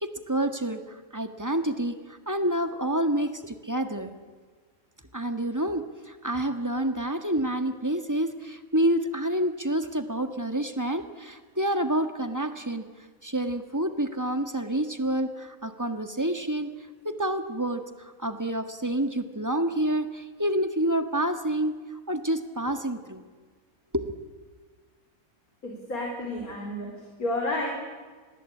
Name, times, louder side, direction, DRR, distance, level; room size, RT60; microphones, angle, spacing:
voice 1, 0.0-4.1 5.1-12.9 13.2-16.7 17.0-23.2 23.9-24.1, right 1 dB, 10° right, 7 dB, 1.7 m, -28 dB
voice 2, 25.6-27.7, left 1 dB, 70° left, 1 dB, 4.5 m, -31 dB
28.5 x 21.0 x 8.6 m, 1.5 s
omnidirectional pair, 1.6 m